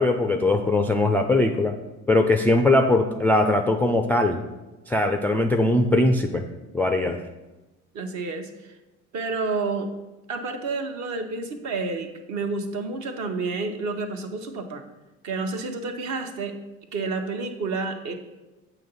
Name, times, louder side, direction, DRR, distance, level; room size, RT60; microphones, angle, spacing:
voice 1, 0.0-1.7 2.1-4.4 4.9-6.4 6.7-7.2, left 2 dB, 5° left, 4 dB, 0.3 m, -20 dB
voice 2, 7.9-8.5 9.1-9.9 10.3-14.8 15.2-16.5 16.9-18.1, right 3 dB, 50° right, 5 dB, 1.0 m, -29 dB
7.6 x 3.0 x 5.4 m, 1.1 s
figure-of-eight pair, 65°, 38 cm